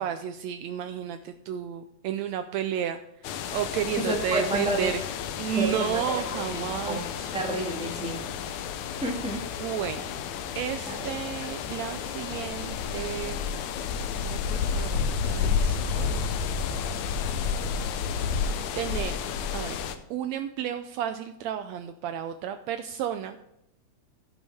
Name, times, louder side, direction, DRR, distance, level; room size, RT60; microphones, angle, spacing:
voice 1, 0.0-5.0 5.4-7.3 9.6-10.0 10.6-13.4 14.2-15.0 15.2-16.3 18.8-19.1 19.5-19.8 20.1-23.4, right 9 dB, 80° right, 8 dB, 1.7 m, -32 dB
sound 1, 3.2-20.0, left 6 dB, 80° left, 2.1 m, -31 dB
voice 2, 4.0-4.9 5.5-6.0 6.3-7.1 7.3-8.2 9.0-9.4 10.8-11.1, right 1 dB, 5° right, -1 dB, 1.3 m, -30 dB
15.0 x 6.3 x 3.5 m, 0.83 s
omnidirectional pair, 3.4 m